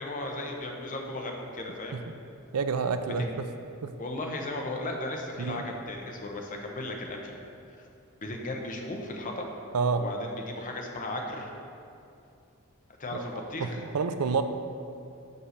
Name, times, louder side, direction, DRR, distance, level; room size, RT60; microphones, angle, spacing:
voice 1, 0.0-2.0 3.2-3.4 4.0-7.4 8.2-9.5 9.9-11.5 13.0-13.8, left 2 dB, 35° left, 1 dB, 0.8 m, -36 dB
voice 2, 2.5-3.5 3.8-3.9 5.4-5.6 9.7-10.1 13.1-14.4, right 5 dB, 80° right, 8 dB, 0.5 m, -29 dB
5.6 x 5.4 x 6.5 m, 2.5 s
head